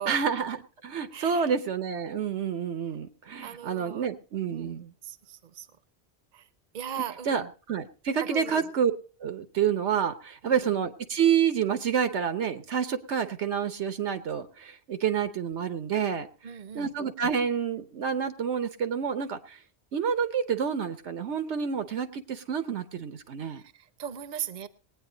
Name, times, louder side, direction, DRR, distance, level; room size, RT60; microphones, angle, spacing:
voice 1, 0.1-4.9 7.3-7.4 7.7-8.9 9.2-16.3 16.7-19.6 19.9-23.6, right 7 dB, 85° right, 10 dB, 1.3 m, -28 dB
voice 2, 1.1-1.5 3.4-4.1 4.5-4.8 5.0-5.7 6.3-6.5 6.7-7.5 8.2-8.7 10.4-10.8 16.4-16.9 23.5-24.7, right 9 dB, 45° right, 13 dB, 0.8 m, -38 dB
19.5 x 9.2 x 3.9 m, 0.38 s
omnidirectional pair, 1.1 m